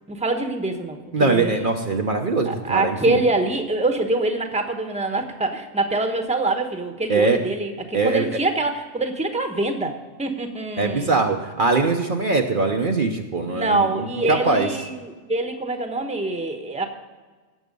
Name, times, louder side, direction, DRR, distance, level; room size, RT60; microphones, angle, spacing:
voice 1, 0.1-1.8 2.4-11.3 13.5-16.8, right 2 dB, 5° right, 5 dB, 1.0 m, -25 dB
voice 2, 1.1-3.2 7.1-7.4 7.9-8.3 10.8-14.7, right 3 dB, 50° right, 3 dB, 1.0 m, -22 dB
17.0 x 7.2 x 5.3 m, 1.3 s
omnidirectional pair, 1.2 m